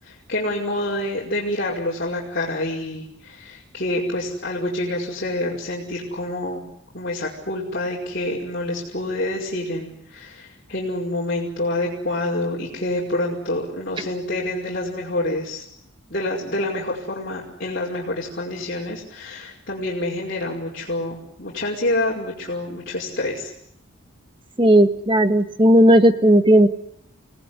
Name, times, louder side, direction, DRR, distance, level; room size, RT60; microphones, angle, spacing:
voice 1, 0.0-6.6 6.9-15.6 16.1-23.5, left 1 dB, 45° left, -4 dB, 5.5 m, -27 dB
voice 2, 24.6-26.7, right 1 dB, 25° right, 9 dB, 1.7 m, -14 dB
30.0 x 18.5 x 9.8 m, 0.74 s
head